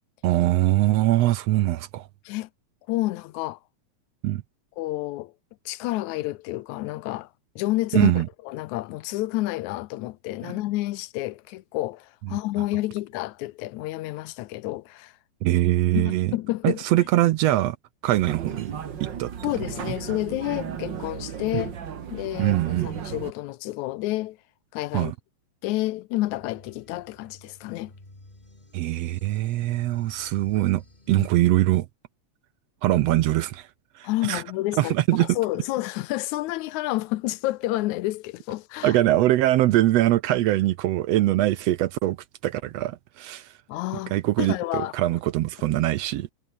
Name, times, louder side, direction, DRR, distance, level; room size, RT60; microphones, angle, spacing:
voice 1, 0.2-2.1 4.2-4.4 7.9-8.3 10.4-10.5 15.4-16.3 16.6-17.8 18.0-18.7 19.0-19.3 22.4-22.9 24.9-25.1 28.7-31.9 32.8-33.7 33.9-34.4 34.7-35.4 38.8-42.2 42.4-43.5 44.1-46.3, right 15 dB, 75° right, 1.6 m, -22 dB
voice 2, 2.9-3.6 4.8-5.3 5.7-7.3 7.6-15.2 16.0-16.8 19.4-21.8 22.1-24.4 24.7-25.1 25.6-27.9 31.2-31.3 34.0-39.0 43.7-44.1 44.4-45.0, left 17 dB, 85° left, 2.1 m, -29 dB
sound 1, 18.1-23.3, right 8 dB, 45° right, 1.9 m, -35 dB
sound 2, 26.3-31.6, left 2 dB, 15° left, 3.7 m, -51 dB
omnidirectional pair, 3.4 m